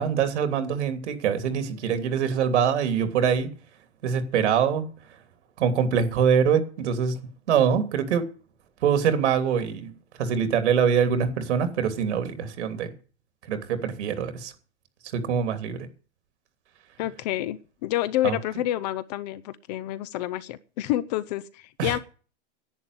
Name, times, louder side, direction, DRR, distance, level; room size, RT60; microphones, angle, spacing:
voice 1, 0.0-3.5 4.0-4.8 5.6-7.2 7.5-8.3 8.8-9.9 10.2-12.9 13.5-14.5 15.1-15.9 18.2-18.4 21.8-22.0, right 7 dB, 80° right, 3.1 m, -24 dB
voice 2, 17.0-22.0, left 14 dB, 35° left, 0.7 m, -28 dB
11.0 x 9.0 x 9.8 m
supercardioid pair, 170°, 35 cm